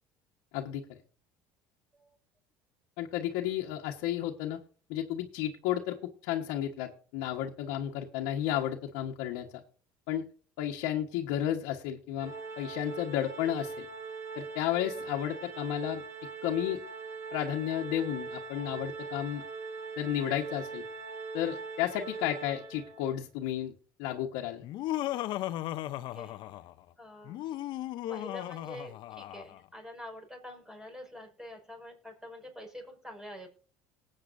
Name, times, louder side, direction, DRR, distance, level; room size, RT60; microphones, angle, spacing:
voice 1, 3.0-4.6 4.9-6.0 6.2-9.5 10.1-10.2 10.6-13.9 14.3-16.0 16.4-16.8 17.3-19.4 20.0-20.8 21.3-23.7 24.0-24.6, left 11 dB, 75° left, 1 dB, 1.4 m, -32 dB
Organ, 12.2-23.1, right 4 dB, 30° right, 4.2 m, -41 dB
Laughter, 24.6-26.8 27.2-29.6, left 14 dB, 60° left, 0.7 m, -36 dB
voice 2, 27.0-27.4 28.1-33.5, left 1 dB, 5° right, 2 dB, 5.3 m, -46 dB
19.5 x 8.7 x 2.7 m, 0.42 s
supercardioid pair, 95°, 9 cm